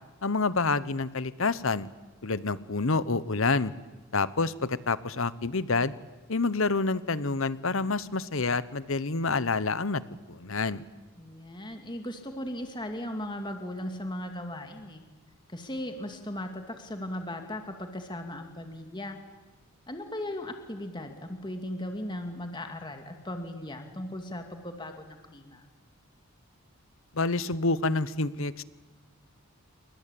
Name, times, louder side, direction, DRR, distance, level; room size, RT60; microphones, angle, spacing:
voice 1, 0.2-1.9 2.2-3.7 4.1-5.9 6.3-10.0 10.3-10.8 27.1-28.6, left 3 dB, 65° left, 16 dB, 1.1 m, -28 dB
voice 2, 11.2-15.0 15.5-19.2 19.9-25.7, left 1 dB, 20° left, 5 dB, 2.3 m, -37 dB
29.0 x 23.5 x 8.6 m, 1.2 s
head